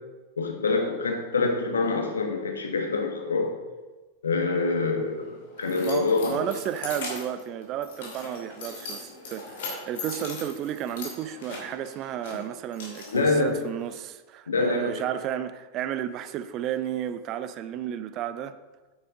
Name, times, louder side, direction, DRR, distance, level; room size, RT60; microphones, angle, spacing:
voice 1, 0.4-3.5 4.2-6.5 13.1-13.6 14.5-14.9, left 3 dB, 70° left, 1.5 m, -26 dB
Keys jangling, 4.9-14.0, left 3 dB, 55° left, 2.7 m, -40 dB
voice 2, 5.8-18.6, right 10 dB, 35° right, 0.5 m, -32 dB
9.2 x 8.8 x 3.8 m
figure-of-eight pair, 90°, 0 cm